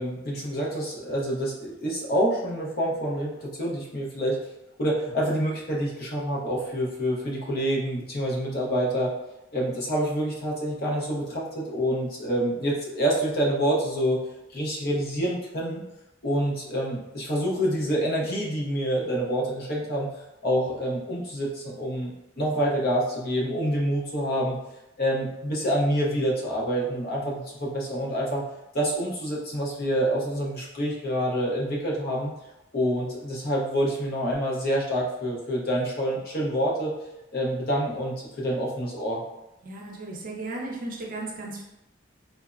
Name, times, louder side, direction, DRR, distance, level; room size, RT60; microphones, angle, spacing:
voice 1, 0.0-4.4 4.8-9.1 9.5-14.2 14.5-15.8 16.2-20.1 20.4-24.6 25.0-28.4 28.7-32.3 32.7-36.9 37.3-39.2, equal, 50° left, -3 dB, 0.7 m, -27 dB
voice 2, 39.6-41.6, right 2 dB, 45° right, -1 dB, 0.5 m, -35 dB
3.3 x 2.0 x 2.4 m, 0.91 s
head